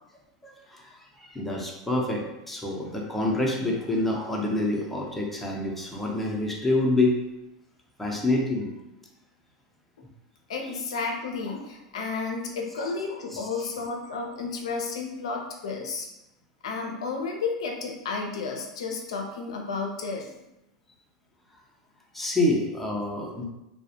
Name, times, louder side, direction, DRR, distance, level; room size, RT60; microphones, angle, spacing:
voice 1, 0.4-7.2 8.0-8.7 10.0-10.1 13.3-13.7 22.1-23.4, left 2 dB, 5° left, -2 dB, 0.5 m, -27 dB
voice 2, 10.5-16.1 16.6-20.3, left 4 dB, 75° left, 1 dB, 0.4 m, -32 dB
2.3 x 2.1 x 2.7 m, 0.92 s
hypercardioid pair, 90°, 3 cm